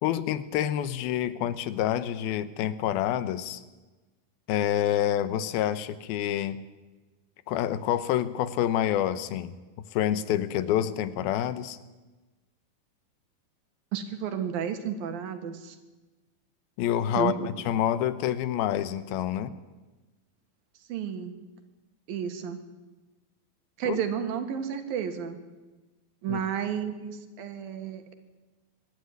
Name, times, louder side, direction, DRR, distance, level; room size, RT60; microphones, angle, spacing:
voice 1, 0.0-3.6 4.5-6.6 7.5-9.6 9.9-11.8 16.8-19.5 23.9-24.0 26.3-26.4, left 11 dB, 80° left, 14 dB, 2.7 m, -27 dB
voice 2, 13.9-15.8 17.2-17.5 20.9-21.3 22.1-22.6 23.8-25.4 26.2-28.1, right 8 dB, 70° right, 7 dB, 3.3 m, -32 dB
24.5 x 11.5 x 9.6 m, 1.2 s
omnidirectional pair, 4.4 m